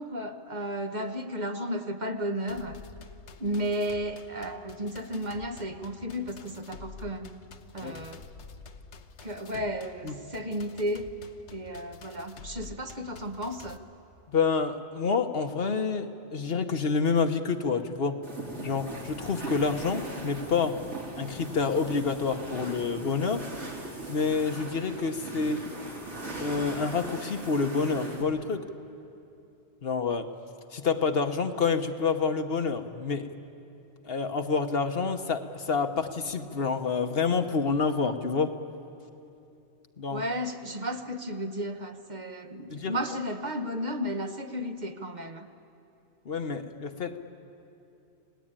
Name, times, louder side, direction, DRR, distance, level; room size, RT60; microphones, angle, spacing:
voice 1, 0.0-2.8 3.4-7.4 7.7-8.2 9.2-11.1 11.5-13.8 40.1-45.5, equal, 45° right, 6 dB, 1.1 m, -33 dB
sound 1, 2.5-13.8, left 4 dB, 80° left, 1.3 m, -49 dB
voice 2, 14.3-18.2 18.6-20.8 21.2-23.5 24.1-25.6 26.4-28.6 29.8-30.3 30.7-33.3 34.0-38.6 40.0-40.2 42.7-42.9 46.2-47.2, left 5 dB, 60° left, 7 dB, 1.2 m, -28 dB
sound 2, 18.2-28.2, right 2 dB, 85° right, 3.5 m, -39 dB
28.0 x 19.0 x 8.9 m, 2.7 s
omnidirectional pair, 1.1 m